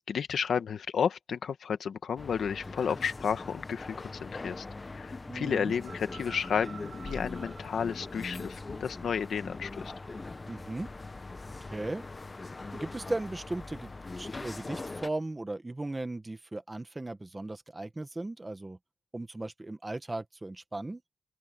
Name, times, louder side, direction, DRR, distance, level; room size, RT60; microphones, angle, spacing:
voice 1, 0.1-4.6 4.9-9.9, left 7 dB, 70° left, 1.6 m, -32 dB
sound 1, 2.2-15.1, left 3 dB, 25° left, 0.8 m, -41 dB
voice 2, 5.3-5.7 10.5-10.9 11.6-12.0 12.7-13.9 14.2-18.8 19.1-21.0, right 2 dB, 15° right, 1.3 m, -37 dB
sound 2, 5.7-12.8, right 7 dB, 80° right, 6.8 m, -55 dB
open air
wide cardioid pair, 135°, 0 cm